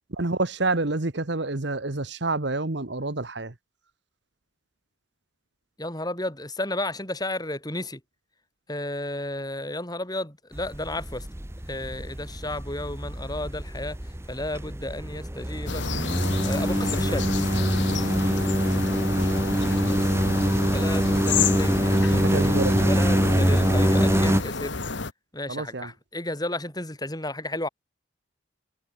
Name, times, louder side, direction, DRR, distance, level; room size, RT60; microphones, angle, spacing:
voice 1, 0.1-3.5 18.3-18.4 22.2-23.4 25.5-25.9, right 2 dB, 55° right, 1.3 m, -28 dB
voice 2, 5.8-8.0 8.7-11.3 11.7-14.0 14.3-15.9 16.5-17.3 19.8-20.1 20.7-22.6 22.9-24.7 25.3-27.7, left 1 dB, 20° left, 6.9 m, -33 dB
sound 1, 10.6-24.4, equal, 15° right, 1.1 m, -24 dB
sound 2, 15.7-25.1, left 4 dB, 60° left, 1.5 m, -30 dB
head